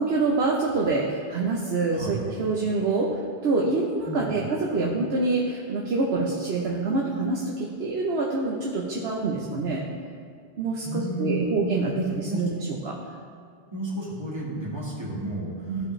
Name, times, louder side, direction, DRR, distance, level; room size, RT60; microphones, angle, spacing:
voice 1, 0.0-9.8 10.6-13.0 15.7-15.9, right 3 dB, 85° right, -2 dB, 1.1 m, -26 dB
voice 2, 4.0-4.4 10.8-11.6 12.2-12.4 13.7-15.9, right 1 dB, 25° right, -6 dB, 2.1 m, -32 dB
14.5 x 5.1 x 3.2 m, 2.3 s
omnidirectional pair, 1.0 m